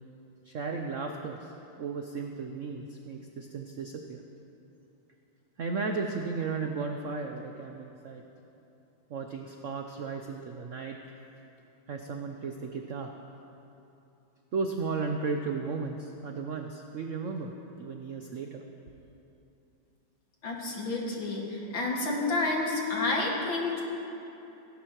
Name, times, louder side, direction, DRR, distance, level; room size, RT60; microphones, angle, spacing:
voice 1, 0.4-1.5 1.8-4.2 5.6-8.2 9.1-11.0 11.9-13.1 14.5-18.6, right 4 dB, 70° right, 3 dB, 0.7 m, -35 dB
voice 2, 20.4-23.8, left 2 dB, 70° left, -2 dB, 2.8 m, -30 dB
17.5 x 16.5 x 3.0 m, 2.9 s
omnidirectional pair, 2.2 m